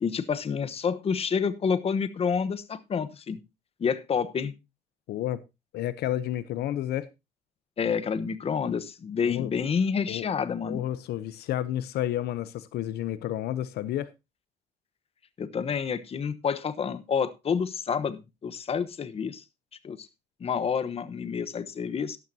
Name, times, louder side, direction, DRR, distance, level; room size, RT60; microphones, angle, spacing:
voice 1, 0.0-3.4 3.8-4.5 7.8-10.8 15.4-19.4 19.8-20.1 20.4-22.2, left 6 dB, 35° left, 1.1 m, -28 dB
voice 2, 5.1-5.4 5.7-7.1 9.2-9.5 10.1-10.2 10.6-14.1, left 12 dB, 75° left, 0.8 m, -31 dB
12.5 x 12.0 x 2.8 m
cardioid pair, 110°, 17 cm